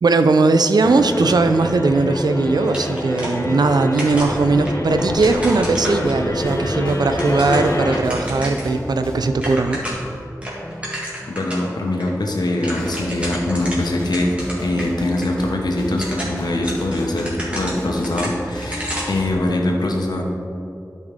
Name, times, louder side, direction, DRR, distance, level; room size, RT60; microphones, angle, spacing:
voice 1, 0.0-9.8, right 3 dB, 90° right, 8 dB, 0.5 m, -18 dB
sound 1, 0.8-8.0, left 1 dB, 55° left, 1.2 m, -26 dB
sound 2, 2.7-3.7 4.0-6.5 6.9-8.7 9.1-9.2 9.3-10.1 10.4-11.7 12.0-12.1 12.4-14.9 15.2-15.3 15.8-19.2, equal, 15° right, 2.0 m, -31 dB
sound 3, 4.1-19.3, equal, 15° left, 1.1 m, -34 dB
voice 2, 11.3-14.4 14.6-20.2, left 1 dB, 90° left, 1 dB, 1.0 m, -22 dB
11.5 x 5.4 x 3.6 m, 2.6 s
wide cardioid pair, 70°, 7 cm